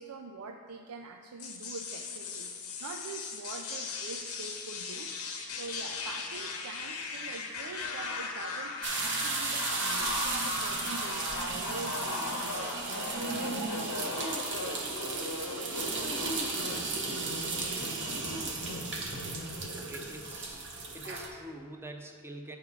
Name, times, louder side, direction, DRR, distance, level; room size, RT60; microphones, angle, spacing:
voice 1, 0.0-5.1 5.5-12.7, right 4 dB, 80° right, 4 dB, 0.4 m, -44 dB
sound 1, 1.4-19.8, left 3 dB, 85° left, 1.0 m, -38 dB
sound 2, 8.8-21.3, right 3 dB, 55° right, 0.9 m, -35 dB
voice 2, 19.8-20.7 20.9-22.6, right 1 dB, 10° right, 4 dB, 0.5 m, -45 dB
8.7 x 3.6 x 5.9 m, 2.2 s
head